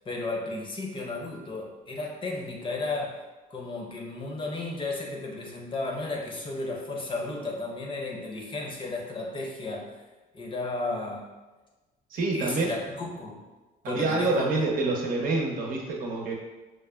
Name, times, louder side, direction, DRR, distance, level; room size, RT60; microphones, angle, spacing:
voice 1, 0.1-3.2 3.5-9.9 10.3-11.3 12.3-13.4 13.9-14.6, left 2 dB, 30° left, -1 dB, 0.6 m, -34 dB
voice 2, 12.1-12.7 13.8-16.3, right 3 dB, 60° right, -1 dB, 0.7 m, -27 dB
4.8 x 2.1 x 2.2 m, 1.2 s
cardioid pair, 110°, 17 cm